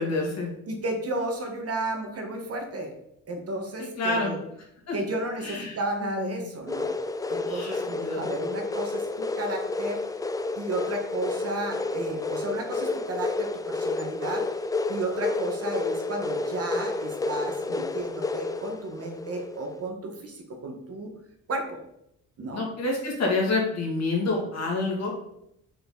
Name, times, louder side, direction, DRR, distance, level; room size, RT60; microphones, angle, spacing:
voice 1, 0.0-0.5 3.8-4.3 4.9-5.0 5.4-6.5 7.5-8.2 22.5-25.1, left 3 dB, 60° left, -1 dB, 2.4 m, -28 dB
voice 2, 0.7-2.9 3.3-4.4 4.9-6.9 7.3-10.0 10.5-14.5 14.9-21.1 21.5-21.8 22.4-22.6, right 2 dB, 50° right, 3 dB, 1.6 m, -33 dB
sound 1, 6.7-19.8, left 3 dB, 10° left, 0.4 m, -30 dB
6.2 x 5.0 x 4.0 m, 0.78 s
cardioid pair, 90°, 30 cm